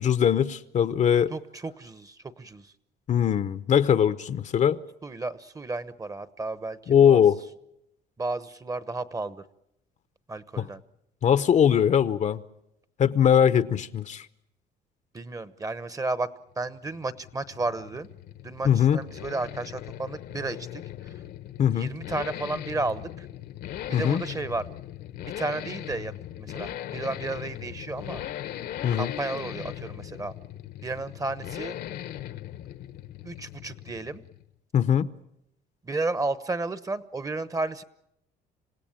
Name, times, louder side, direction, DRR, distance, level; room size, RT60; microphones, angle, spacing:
voice 1, 0.0-1.3 3.1-4.8 6.9-7.4 10.6-10.7 11.2-12.4 13.0-14.2 18.6-19.0 21.6-21.9 23.9-24.2 28.8-29.1 34.7-35.1, left 8 dB, 45° left, 0.8 m, -21 dB
voice 2, 1.3-2.7 5.0-7.2 8.2-9.4 10.3-10.8 15.1-16.3 16.6-18.1 18.4-21.2 21.7-23.3 23.9-24.7 25.2-28.2 28.9-30.3 30.8-31.8 33.2-34.2 35.8-37.8, right 3 dB, 20° right, 1.0 m, -33 dB
sound 1, 16.5-34.5, left 12 dB, 75° left, 1.2 m, -39 dB
27.0 x 17.0 x 8.9 m
cardioid pair, 110°, 17 cm